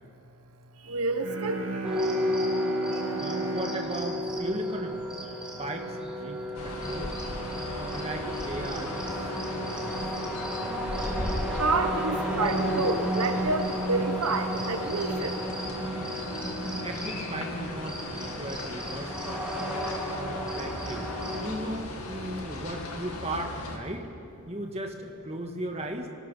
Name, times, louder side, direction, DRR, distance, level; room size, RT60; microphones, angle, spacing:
voice 1, 0.9-1.7 11.6-15.4, right 3 dB, 85° right, 7 dB, 1.2 m, -29 dB
Bowed string instrument, 1.2-5.5, right 2 dB, 65° right, 2.6 m, -36 dB
sound 1, 1.8-21.4, equal, 5° right, 2.7 m, -33 dB
voice 2, 3.2-5.1 5.5-7.2 7.6-10.0 16.8-19.8 20.1-21.1 21.4-24.1 24.5-26.1, right 1 dB, 30° right, 3 dB, 1.8 m, -37 dB
sound 2, 6.5-23.8, left 1 dB, 85° left, 2.5 m, -37 dB
25.5 x 19.0 x 5.6 m, 2.5 s
head